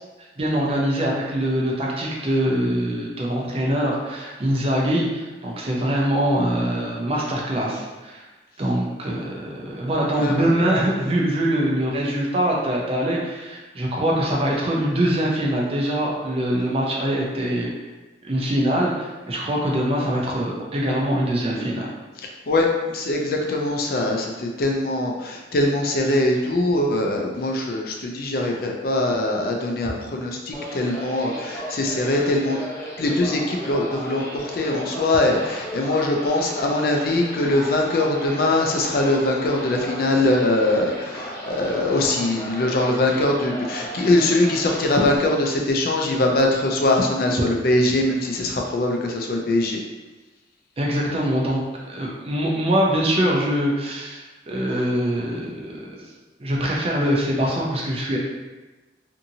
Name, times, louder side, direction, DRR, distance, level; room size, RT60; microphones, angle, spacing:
voice 1, 0.4-8.2 8.6-17.7 18.2-21.9 50.8-56.1 56.4-58.2, right 1 dB, 35° right, -3 dB, 0.5 m, -23 dB
voice 2, 10.2-10.5 21.5-21.8 22.2-32.6 33.0-49.8, left 2 dB, 55° left, 1 dB, 0.4 m, -22 dB
sound 1, 30.5-45.2, equal, 15° left, 0.8 m, -34 dB
2.7 x 2.6 x 2.6 m, 1.2 s
head